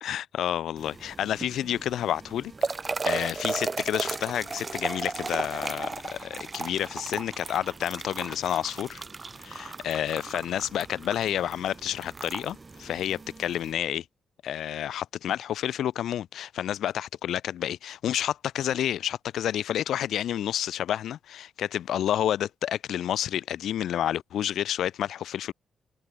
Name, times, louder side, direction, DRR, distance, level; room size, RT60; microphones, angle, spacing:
voice 1, 0.0-2.5 3.0-9.0 9.4-14.0 14.4-25.5, left 11 dB, 65° left, 1.0 m, -29 dB
sound 1, 0.8-13.7, right 3 dB, 35° right, 4.6 m, -36 dB
hypercardioid pair, 40°, 0 cm